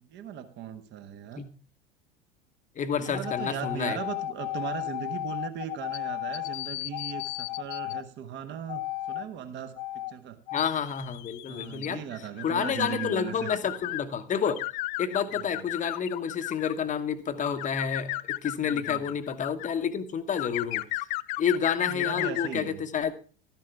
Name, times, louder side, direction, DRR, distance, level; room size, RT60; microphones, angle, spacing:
voice 1, 0.0-1.4 3.0-9.8 10.1-10.4 11.5-13.5 15.3-15.6 18.6-19.0 21.8-22.8, right 9 dB, 35° right, 9 dB, 1.2 m, -38 dB
voice 2, 2.8-4.0 10.5-14.6 15.0-20.8 21.4-23.1, left 7 dB, 25° left, 10 dB, 1.0 m, -29 dB
sound 1, 3.1-8.0 8.7-9.2 9.8-10.1 10.5-14.0 14.4-16.8 17.4-19.7 20.4-22.6, left 19 dB, 50° left, 0.4 m, -34 dB
12.5 x 10.5 x 3.4 m, 0.40 s
figure-of-eight pair, 75°, 31 cm